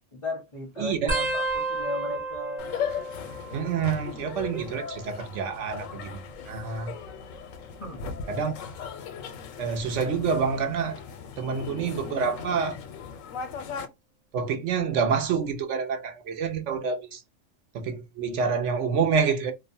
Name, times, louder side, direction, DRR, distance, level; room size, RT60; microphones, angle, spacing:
voice 1, 0.1-2.7 7.8-8.1, left 2 dB, 35° left, 0.5 m, -35 dB
voice 2, 0.8-1.2 3.5-6.9 8.3-8.5 9.6-11.0 11.4-12.8 14.3-17.2 17.7-19.5, right 6 dB, 70° right, 0.9 m, -27 dB
sound 1, 1.1-4.3 4.5-5.1 6.1-7.6 8.2-8.6 9.8-10.2 11.7-11.8, right 2 dB, 30° right, 0.8 m, -34 dB
sound 2, 2.6-13.9, left 7 dB, 85° left, 1.0 m, -38 dB
2.7 x 2.1 x 2.5 m
omnidirectional pair, 1.3 m